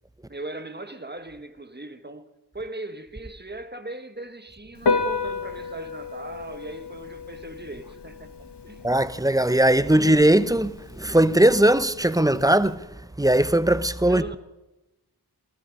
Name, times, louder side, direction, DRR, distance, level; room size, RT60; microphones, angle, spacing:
voice 1, 0.3-2.2 2.5-8.3 8.6-8.9 14.1-14.4, right 2 dB, 25° right, 1.5 m, -38 dB
Piano, 4.8-12.7, left 4 dB, 75° left, 1.6 m, -32 dB
voice 2, 8.8-12.9 13.2-14.2, right 1 dB, 10° right, 0.6 m, -19 dB
20.0 x 13.5 x 5.3 m
wide cardioid pair, 60°, 41 cm